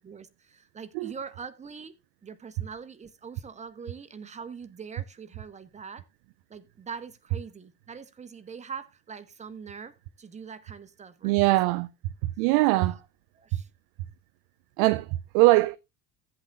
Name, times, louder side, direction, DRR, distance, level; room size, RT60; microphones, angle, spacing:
voice 1, 0.0-1.9 2.2-6.0 6.5-11.8 13.4-13.7, right 6 dB, 15° right, 0.9 m, -43 dB
voice 2, 11.2-11.9 12.4-13.0 14.8-15.8, right 21 dB, 35° right, 0.4 m, -22 dB
16.0 x 8.2 x 2.3 m
figure-of-eight pair, 70°, 47 cm